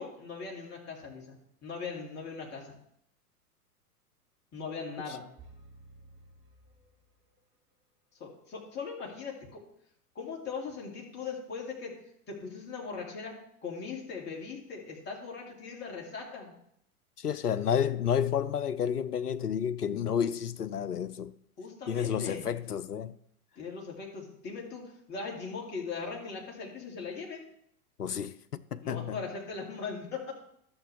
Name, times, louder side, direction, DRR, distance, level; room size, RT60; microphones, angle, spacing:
voice 1, 0.0-2.7 4.5-5.3 8.2-9.6 10.1-12.0 12.3-13.3 13.6-16.5 21.6-22.5 23.6-27.4 28.8-30.3, left 5 dB, 20° left, 2.5 m, -39 dB
sound 1, 5.4-7.5, right 2 dB, 25° right, 3.5 m, -55 dB
voice 2, 17.2-21.3 21.9-23.1 28.0-29.2, left 8 dB, 80° left, 0.7 m, -30 dB
12.0 x 7.0 x 3.4 m
figure-of-eight pair, 100°, 46 cm